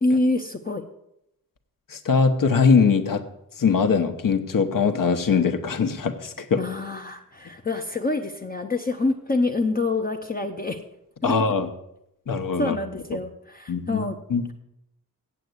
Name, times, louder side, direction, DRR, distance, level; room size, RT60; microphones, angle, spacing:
voice 1, 0.0-0.8 6.6-10.8 11.2-11.3 12.6-14.1, left 2 dB, 25° left, 3 dB, 0.6 m, -26 dB
voice 2, 1.9-3.2 3.6-6.6 11.2-11.7 12.3-12.8 13.1-13.2 13.7-14.0 14.3-14.4, left 5 dB, 65° left, 7 dB, 1.0 m, -21 dB
8.2 x 8.1 x 7.9 m, 0.81 s
wide cardioid pair, 160°, 36 cm